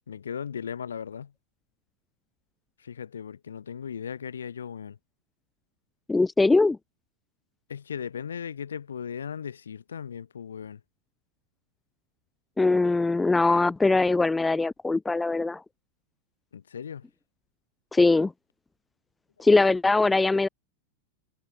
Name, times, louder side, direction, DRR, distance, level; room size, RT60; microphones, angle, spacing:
voice 1, 0.1-1.3 2.8-5.0 7.7-10.8 16.5-17.1, left 7 dB, 70° left, 2.9 m, -37 dB
voice 2, 6.1-6.8 12.6-15.6 17.9-18.3 19.4-20.5, left 3 dB, 10° left, 0.3 m, -21 dB
figure-of-eight pair, 90°, 0 cm